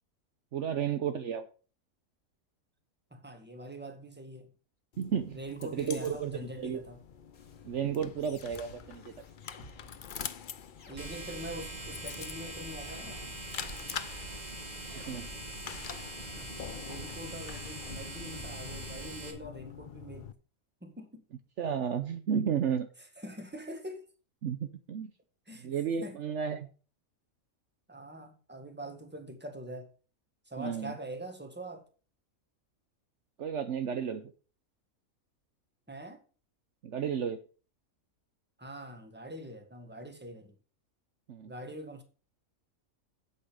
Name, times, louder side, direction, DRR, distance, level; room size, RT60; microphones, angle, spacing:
voice 1, 0.5-1.4 5.0-5.4 5.7-6.8 7.6-9.1 15.1-15.3 21.6-22.9 24.4-25.1 25.6-26.7 30.6-30.9 33.4-34.3 36.8-37.4 41.3-41.5, right 7 dB, 60° right, 1.0 m, -32 dB
voice 2, 3.1-4.5 5.3-7.0 10.9-13.2 16.4-16.5 16.9-20.3 20.8-21.2 23.2-24.0 25.5-25.7 26.0-26.2 27.9-29.9 30.5-31.8 35.9-36.2 38.6-40.6 41.5-42.0, right 1 dB, 5° right, 1.6 m, -43 dB
sound 1, 4.9-20.3, left 8 dB, 50° left, 0.6 m, -46 dB
sound 2, 7.3-19.3, left 3 dB, 85° left, 2.0 m, -55 dB
sound 3, 11.0-19.3, right 1 dB, 30° right, 1.9 m, -42 dB
8.5 x 8.2 x 5.0 m
omnidirectional pair, 1.5 m